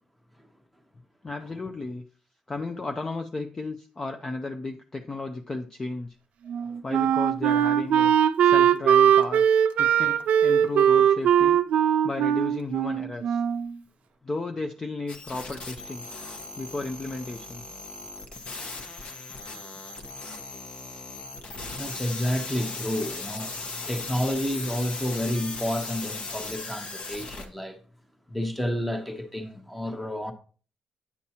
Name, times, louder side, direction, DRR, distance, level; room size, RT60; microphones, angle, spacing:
voice 1, 1.2-2.0 2.5-6.1 6.8-8.1 8.4-11.6 12.0-13.4 14.2-16.1 16.6-17.6, left 3 dB, 20° left, 0.5 m, -34 dB
Wind instrument woodwind instrument, 6.5-13.7, right 9 dB, 70° right, 0.5 m, -20 dB
sound 1, 15.1-27.5, left 3 dB, 55° left, 1.1 m, -38 dB
voice 2, 18.6-18.9 21.7-27.8 28.3-30.3, equal, 5° left, 1.0 m, -30 dB
9.5 x 7.0 x 2.9 m
cardioid pair, 155°, 2 cm